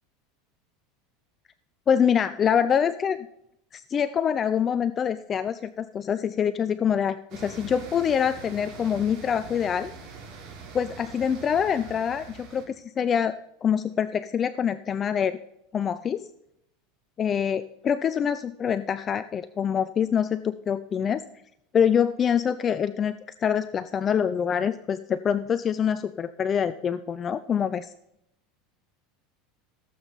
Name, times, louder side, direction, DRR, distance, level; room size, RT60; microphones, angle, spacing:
voice 1, 1.9-3.3 3.7-9.9 10.7-15.3 15.7-16.3 17.2-21.2 21.7-23.2 23.4-27.9, left 8 dB, 25° left, 13 dB, 0.4 m, -25 dB
sound 1, 7.3-12.6, right 5 dB, 45° right, 3.3 m, -43 dB
17.0 x 7.9 x 4.0 m, 0.79 s
supercardioid pair, 150°, 0 cm